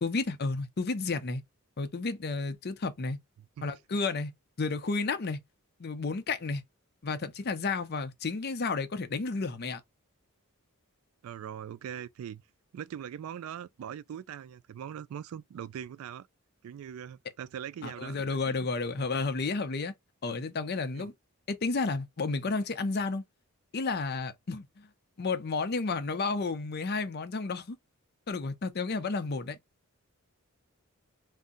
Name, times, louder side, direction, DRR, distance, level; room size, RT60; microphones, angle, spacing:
voice 1, 0.0-1.4 1.8-3.2 3.6-4.3 4.6-5.4 5.8-6.6 7.0-9.8 17.8-19.9 20.2-21.1 21.5-23.2 23.7-24.9 25.2-27.8 28.3-29.6, left 3 dB, 45° left, 0.5 m, -32 dB
voice 2, 11.2-12.4 12.7-16.3 16.6-18.7 20.9-21.1, right 9 dB, 75° right, 0.3 m, -41 dB
2.7 x 2.1 x 3.7 m
head